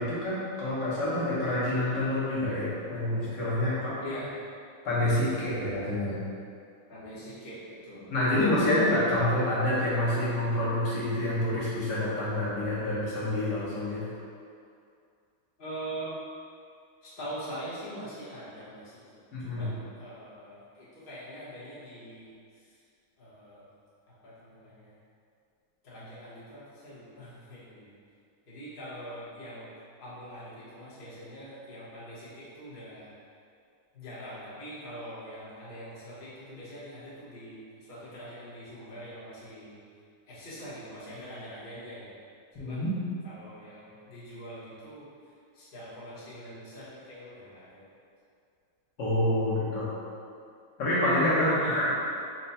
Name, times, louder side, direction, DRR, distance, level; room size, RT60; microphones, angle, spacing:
voice 1, 0.0-3.9 4.8-6.2 8.1-14.0 19.3-19.7 42.6-42.9 49.0-49.9 50.8-51.9, left 1 dB, 60° left, -10 dB, 1.5 m, -27 dB
voice 2, 6.9-8.1 15.6-16.1 17.0-22.3 23.2-23.6 24.2-24.9 25.8-27.9 28.5-29.7 30.0-33.1 33.9-37.6 37.9-39.8 40.3-42.1 42.6-42.8 43.2-45.0 45.5-47.9 51.4-51.9, equal, 35° left, -11 dB, 1.0 m, -43 dB
4.4 x 2.2 x 4.1 m, 2.4 s
omnidirectional pair, 2.2 m